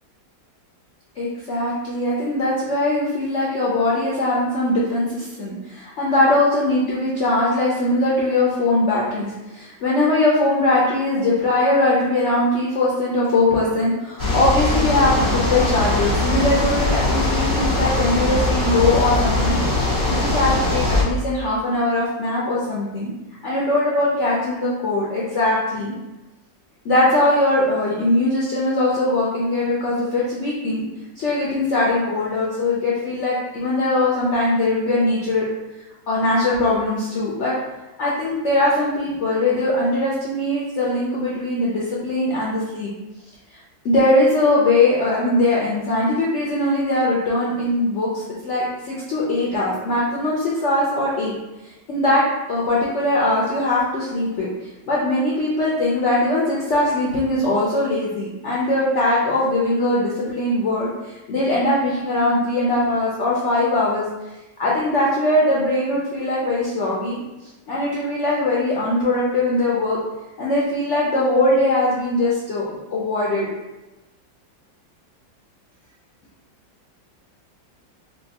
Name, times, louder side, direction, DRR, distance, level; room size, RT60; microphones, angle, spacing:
voice 1, 1.2-23.1 23.4-25.9 26.8-30.8 31.2-35.5 36.1-37.5 38.0-42.9 43.8-51.3 51.9-52.2 52.5-54.5 54.9-64.0 64.6-67.2 67.7-70.0 70.4-72.6 72.9-73.5, left 2 dB, 90° left, -6 dB, 0.6 m, -21 dB
sound 1, 14.2-21.0, left 2 dB, 20° right, 1.0 m, -21 dB
4.3 x 2.3 x 2.8 m, 1.0 s
omnidirectional pair, 2.0 m